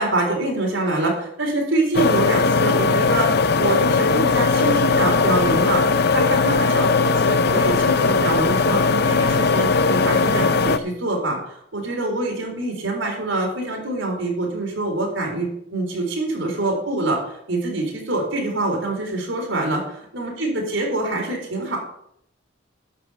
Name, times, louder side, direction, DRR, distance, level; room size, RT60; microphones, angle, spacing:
voice 1, 0.0-3.3 3.6-5.8 6.1-17.2 17.5-19.8 20.1-21.8, right 2 dB, 90° right, 0 dB, 4.1 m, -25 dB
sound 1, 1.9-10.8, left 4 dB, 55° left, 0.6 m, -19 dB
11.5 x 5.8 x 7.0 m, 0.70 s
head